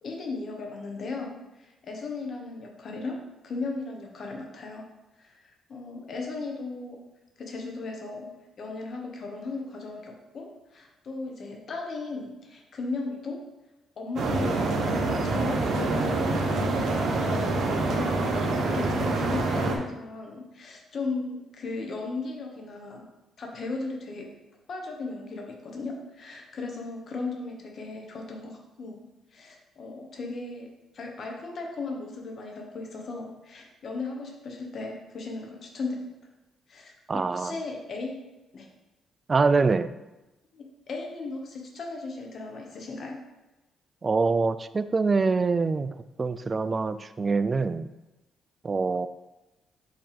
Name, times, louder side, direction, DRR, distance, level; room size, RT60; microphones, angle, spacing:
voice 1, 0.0-3.2 3.4-4.9 5.2-7.0 7.4-13.4 14.0-23.1 23.4-24.3 24.7-36.1 36.7-38.2 38.5-38.7 40.5-43.2, left 3 dB, 55° left, 1 dB, 1.3 m, -36 dB
sound 1, 14.2-19.8, right 2 dB, 65° right, 1.0 m, -26 dB
voice 2, 37.1-37.6 39.3-39.9 44.0-47.9 48.6-49.1, right 4 dB, 30° right, 13 dB, 0.3 m, -25 dB
5.5 x 3.4 x 5.1 m, 1.0 s
cardioid pair, 90°, 0 cm